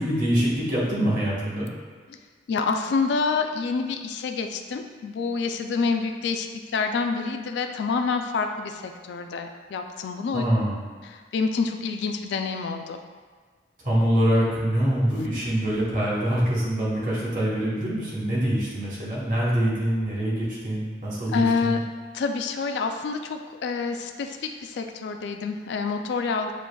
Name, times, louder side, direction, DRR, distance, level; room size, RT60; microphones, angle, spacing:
voice 1, 0.0-1.7 10.3-10.8 13.8-21.8, right 1 dB, 45° right, -6 dB, 1.1 m, -24 dB
voice 2, 2.5-10.4 11.1-13.0 21.3-21.8 22.1-26.5, left 4 dB, 65° left, 5 dB, 0.3 m, -27 dB
7.0 x 2.5 x 2.2 m, 1.5 s
head